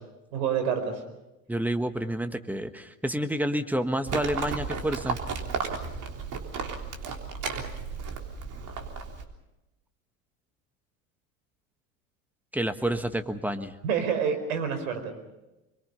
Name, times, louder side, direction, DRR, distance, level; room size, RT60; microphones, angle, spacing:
voice 1, 0.3-1.0 13.8-15.1, right 7 dB, 75° right, 7 dB, 5.0 m, -27 dB
voice 2, 1.5-5.2 12.5-13.7, right 1 dB, 5° right, 9 dB, 1.5 m, -29 dB
Livestock farm animals working animals, 4.1-9.2, right 5 dB, 45° right, 3.6 m, -34 dB
26.5 x 23.5 x 5.6 m, 0.99 s
hypercardioid pair, 85°, 43 cm